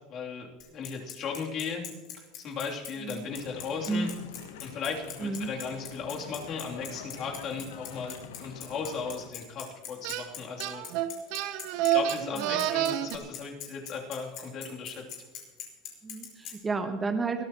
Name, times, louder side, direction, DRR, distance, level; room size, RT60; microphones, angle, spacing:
voice 1, 0.1-1.9 2.1-4.1 4.6-10.8 11.8-15.0, left 5 dB, 45° left, -1 dB, 3.1 m, -36 dB
Bicycle, 0.6-16.5, left 10 dB, 60° left, 4.5 m, -41 dB
sound 1, 3.3-9.3, left 8 dB, 85° left, 1.1 m, -46 dB
voice 2, 5.2-5.5 12.4-12.7 16.0-17.4, right 3 dB, 20° right, 6 dB, 1.1 m, -32 dB
sound 2, 10.0-10.3 10.6-13.2, right 11 dB, 65° right, 0.9 m, -28 dB
22.0 x 13.0 x 3.0 m, 1.2 s
supercardioid pair, 105°, 0 cm